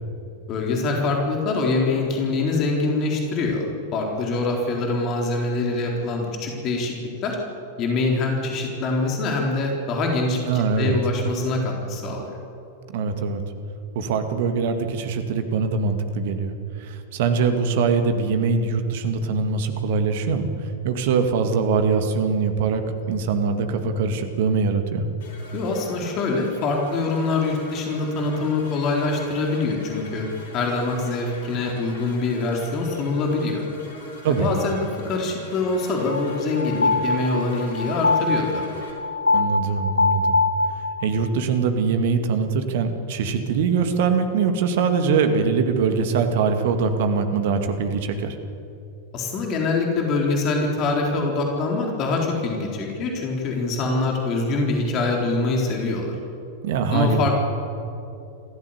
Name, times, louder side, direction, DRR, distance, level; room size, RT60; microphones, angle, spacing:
voice 1, 0.5-3.7 3.9-7.4 7.8-12.4 25.5-30.3 30.5-33.7 34.3-34.8 35.0-38.7 49.1-56.1 56.9-57.4, left 3 dB, 35° left, 0 dB, 3.9 m, -24 dB
voice 2, 10.5-11.0 12.9-13.4 13.9-16.5 16.8-25.0 34.2-34.5 39.3-40.4 41.0-48.4 56.6-57.3, right 5 dB, 55° right, 7 dB, 2.2 m, -22 dB
sound 1, 25.2-38.9, left 2 dB, 55° left, 5.0 m, -44 dB
sound 2, 36.1-41.3, left 3 dB, 80° left, 0.9 m, -23 dB
27.0 x 15.0 x 8.2 m, 2.8 s
figure-of-eight pair, 90°, 0 cm